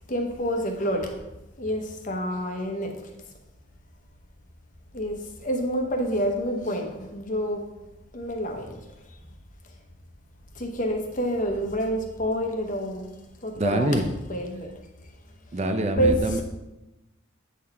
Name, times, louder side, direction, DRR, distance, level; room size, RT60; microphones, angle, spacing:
voice 1, 0.1-1.2 1.6-3.1 4.9-7.6 8.1-8.8 10.5-13.1 13.4-14.0 14.3-14.7 15.6-15.7 16.0-16.4, equal, 40° left, 3 dB, 0.9 m, -28 dB
voice 2, 13.6-14.0 15.5-16.4, right 1 dB, 30° right, 6 dB, 0.5 m, -25 dB
8.3 x 4.0 x 4.3 m, 0.98 s
head